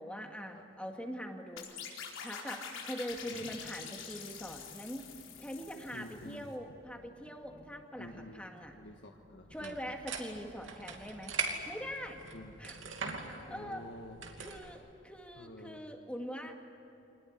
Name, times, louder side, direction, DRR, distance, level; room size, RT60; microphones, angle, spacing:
voice 1, 0.0-1.7 2.2-5.0 5.4-8.1 8.3-8.7 9.5-11.4 11.7-12.2 12.6-12.8 13.0-13.8 14.4-16.6, equal, 5° left, 3 dB, 2.0 m, -43 dB
sound 1, 1.6-6.4, left 6 dB, 85° left, 4.4 m, -46 dB
sound 2, 3.1-14.4, equal, 30° right, 2.7 m, -61 dB
voice 2, 3.3-3.6 5.9-6.6 8.0-8.5 8.7-9.9 12.3-12.6 13.5-14.2 15.3-15.9, left 1 dB, 65° left, 2 dB, 1.4 m, -49 dB
sound 3, 9.5-14.7, right 4 dB, 80° right, 2.7 m, -41 dB
25.0 x 19.5 x 9.6 m, 3.0 s
head